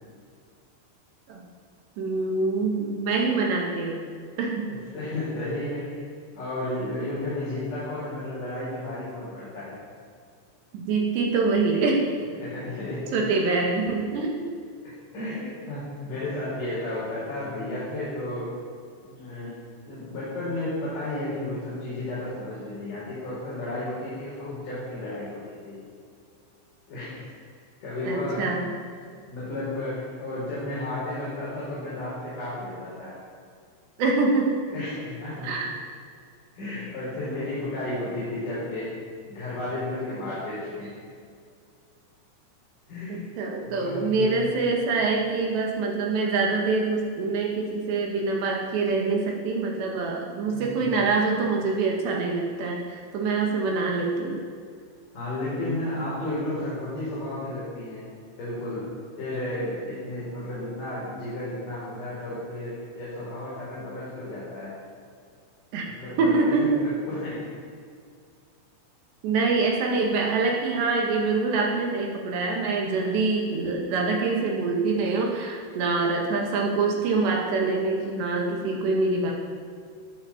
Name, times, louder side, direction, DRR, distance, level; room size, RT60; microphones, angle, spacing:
voice 1, 2.0-4.0 4.4-4.7 10.7-12.0 13.1-14.5 28.1-28.7 34.0-34.6 35.4-35.7 43.1-54.4 65.7-65.9 66.2-66.8 69.2-79.3, right 3 dB, 65° right, 0 dB, 4.0 m, -25 dB
voice 2, 4.9-6.0 6.3-9.7 11.7-11.8 12.4-13.1 14.8-18.5 19.0-19.6 19.9-25.8 26.9-27.1 27.8-28.5 29.1-33.1 34.7-35.6 36.5-38.9 39.3-41.0 42.9-43.2 43.6-44.4 50.5-50.8 55.1-58.0 58.4-58.8 59.2-64.8 65.8-66.5 66.8-67.4, left 1 dB, 45° left, -10 dB, 6.7 m, -33 dB
17.5 x 9.7 x 7.5 m, 2.1 s
omnidirectional pair, 5.5 m